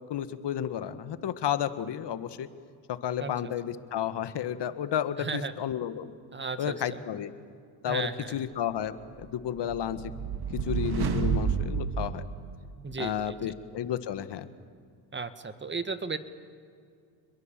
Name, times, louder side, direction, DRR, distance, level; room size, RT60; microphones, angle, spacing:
voice 1, 0.1-2.5 2.9-6.1 6.6-7.3 7.8-10.0 10.5-12.2 13.0-14.5, left 10 dB, 55° left, 12 dB, 1.6 m, -32 dB
voice 2, 5.2-5.5 6.3-7.0 7.9-8.4 12.8-13.4 15.1-16.2, right 4 dB, 20° right, 11 dB, 1.7 m, -34 dB
sound 1, 9.2-13.1, right 6 dB, 50° right, 2.0 m, -31 dB
29.5 x 22.0 x 7.5 m, 2.3 s
supercardioid pair, 80°, 49 cm